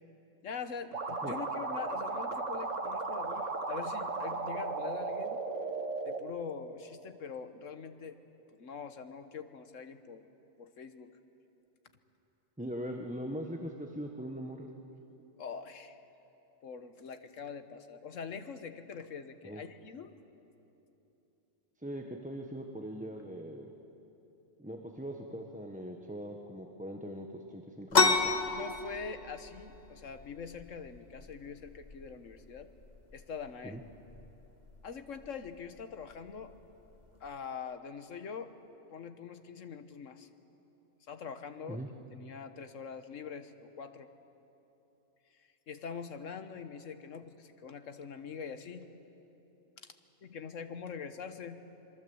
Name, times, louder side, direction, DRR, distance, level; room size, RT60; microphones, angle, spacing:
voice 1, 0.4-5.4 6.0-8.2 8.5-10.3 10.6-11.1 15.4-16.0 16.6-20.1 28.5-32.7 33.1-33.8 34.8-36.5 37.2-38.6 38.9-40.3 41.1-41.8 42.1-44.1 45.3-48.9 49.8-49.9 50.2-51.6, left 6 dB, 90° left, 9 dB, 1.5 m, -43 dB
sound 1, 0.9-6.2, right 3 dB, 80° right, 2.0 m, -35 dB
voice 2, 12.6-14.7 19.4-19.6 21.8-23.7 24.6-28.4 33.6-33.8 41.7-41.9, equal, 5° right, 2 dB, 1.1 m, -41 dB
sound 2, 27.9-37.3, left 4 dB, 35° left, 1.2 m, -34 dB
26.5 x 22.5 x 7.9 m, 3.0 s
omnidirectional pair, 1.3 m